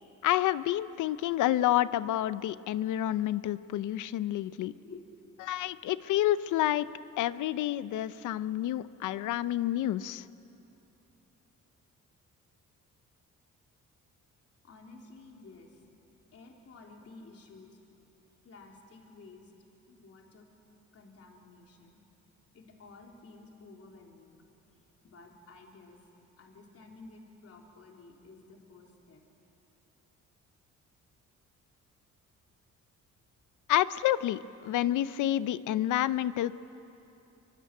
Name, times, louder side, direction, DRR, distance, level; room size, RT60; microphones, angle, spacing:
voice 1, 0.2-4.7 5.5-6.9 7.2-10.2 33.7-36.5, left 13 dB, 80° left, 16 dB, 0.7 m, -29 dB
voice 2, 14.6-15.8 16.3-17.8 18.4-19.5 19.9-20.5 20.9-22.0 22.5-24.4 25.0-26.0 26.4-29.2, left 3 dB, 50° left, 0 dB, 3.7 m, -52 dB
25.0 x 23.5 x 9.1 m, 2.9 s
cardioid pair, 90°, 30 cm